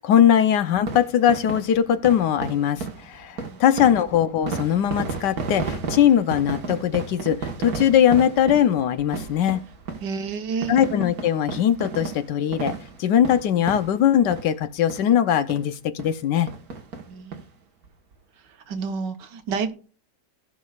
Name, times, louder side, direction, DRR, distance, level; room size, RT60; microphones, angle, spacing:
voice 1, 0.0-9.6 10.7-16.5, left 9 dB, 75° left, 1.3 m, -20 dB
sound 1, 0.7-14.6 14.9-15.1 15.5-15.6 16.0-16.2 16.5-17.4 17.8-17.9 18.1-18.2, right 4 dB, 55° right, 1.8 m, -33 dB
voice 2, 10.0-10.8 17.1-17.5 18.7-19.7, right 5 dB, 75° right, 1.7 m, -30 dB
18.0 x 6.1 x 2.4 m
omnidirectional pair, 2.0 m